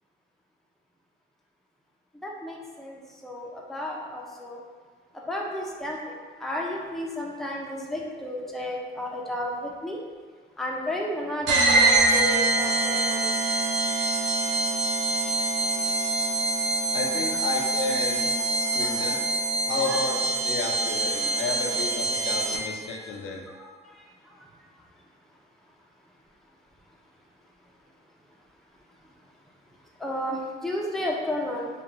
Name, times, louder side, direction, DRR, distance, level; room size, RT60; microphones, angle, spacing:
voice 1, 2.2-4.6 5.3-6.0 6.4-10.0 10.6-13.3 18.4-18.5 18.8-19.2 19.8-20.0 23.6-23.7 30.0-31.7, left 1 dB, ahead, -2 dB, 0.4 m, -32 dB
sound 1, 11.5-22.8, right 2 dB, 65° right, 0.5 m, -25 dB
voice 2, 16.9-19.2 19.7-23.4, left 3 dB, 80° left, 1 dB, 0.5 m, -32 dB
2.5 x 2.4 x 2.9 m, 1.5 s
cardioid pair, 90°, 20 cm